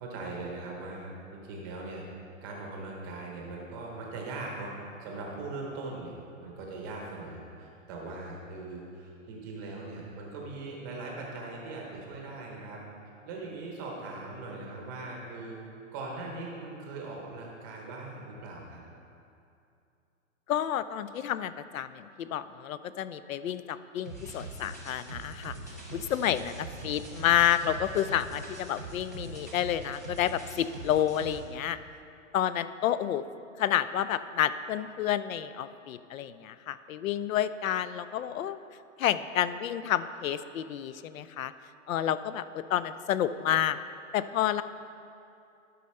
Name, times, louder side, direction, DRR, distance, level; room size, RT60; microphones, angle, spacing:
voice 1, 0.0-2.0 2.4-4.7 5.0-6.1 6.4-12.8 13.2-15.6 15.9-18.8, right 3 dB, 15° right, -1 dB, 0.7 m, -40 dB
voice 2, 20.5-25.5 25.9-31.8 32.3-33.2 33.6-38.6 39.0-41.5 41.9-43.8 44.1-44.6, left 10 dB, 80° left, 14 dB, 0.5 m, -29 dB
sound 1, 24.0-31.4, right 2 dB, 15° left, 0.4 m, -42 dB
12.0 x 5.6 x 4.3 m, 2.6 s
hypercardioid pair, 170°, 40 cm